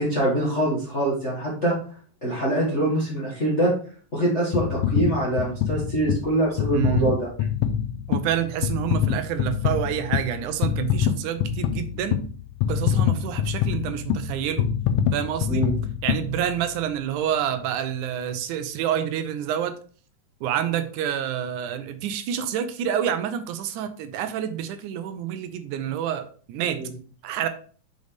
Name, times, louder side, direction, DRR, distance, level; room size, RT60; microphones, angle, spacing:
voice 1, 0.0-1.7 2.2-3.7 4.1-7.3 15.5-15.7 26.8-26.9, right 1 dB, 30° left, -5 dB, 1.3 m, -24 dB
sound 1, 4.5-16.9 17.5-17.6, left 9 dB, 85° left, 2.2 m, -26 dB
voice 2, 6.7-7.1 8.1-12.2 12.7-14.7 15.1-15.7 16.0-19.7 20.4-26.8 27.2-27.5, right 10 dB, 80° right, 9 dB, 1.9 m, -28 dB
6.3 x 5.3 x 3.4 m, 0.43 s
omnidirectional pair, 3.9 m